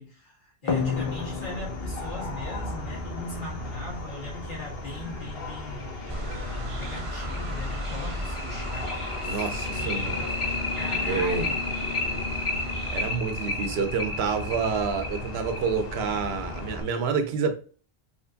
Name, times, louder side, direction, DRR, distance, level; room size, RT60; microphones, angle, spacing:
voice 1, 0.0-9.5 9.8-12.4, left 2 dB, 55° left, 1.8 m, -40 dB
sound 1, 0.7-16.8, left 2 dB, 70° left, 1.1 m, -36 dB
sound 2, 0.7-3.8 5.3-5.4 5.8-5.9 6.3-6.4 6.8-16.9, left 3 dB, 35° left, 0.7 m, -33 dB
sound 3, 6.1-13.1, equal, 40° right, 0.6 m, -37 dB
voice 2, 9.3-10.2 11.1-11.4 12.9-17.5, right 5 dB, 80° right, 0.9 m, -28 dB
4.3 x 3.0 x 2.6 m
omnidirectional pair, 1.0 m